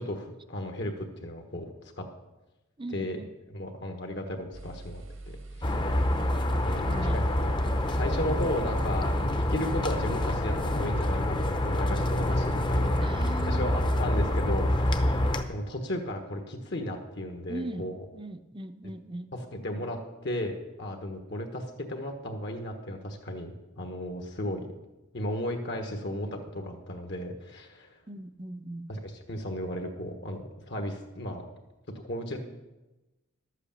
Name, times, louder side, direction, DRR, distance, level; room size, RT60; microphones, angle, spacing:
voice 1, 0.0-2.1 2.9-3.2 3.5-5.8 6.6-7.5 7.9-13.0 13.4-15.2 15.5-18.0 18.8-18.9 19.5-24.7 25.1-28.0 28.9-31.5 32.0-32.4, left 1 dB, 60° left, 4 dB, 1.3 m, -35 dB
voice 2, 2.8-3.3 6.8-7.2 13.0-13.7 17.5-17.9 18.1-19.3 28.1-28.9, right 1 dB, 25° right, 11 dB, 0.6 m, -39 dB
sound 1, 4.5-14.9, right 2 dB, 85° right, 2.0 m, -45 dB
sound 2, 5.6-15.4, left 1 dB, 25° left, 0.8 m, -27 dB
12.0 x 8.2 x 7.1 m, 1.0 s
head